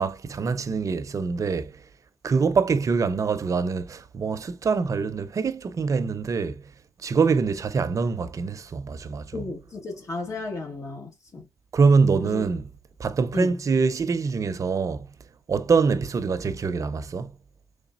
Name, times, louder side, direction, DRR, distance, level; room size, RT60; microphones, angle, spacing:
voice 1, 0.0-1.7 2.2-6.6 7.0-9.4 11.7-12.7 13.0-15.0 15.5-17.3, right 5 dB, 50° right, 0.6 m, -24 dB
voice 2, 9.3-11.4 12.2-12.4 13.3-13.5, left 3 dB, 50° left, 1.6 m, -34 dB
4.0 x 3.3 x 2.5 m
cardioid pair, 85°, 7 cm